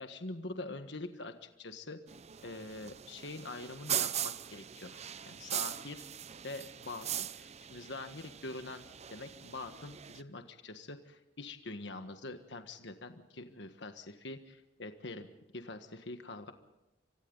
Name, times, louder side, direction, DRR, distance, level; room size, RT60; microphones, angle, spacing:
voice 1, 0.0-2.0 2.4-6.0 6.4-8.8 9.1-15.3 15.5-16.5, left 2 dB, 70° left, 7 dB, 1.5 m, -44 dB
sound 1, 2.1-10.2, right 10 dB, 35° right, 0.6 m, -40 dB
29.5 x 24.5 x 4.0 m, 0.94 s
head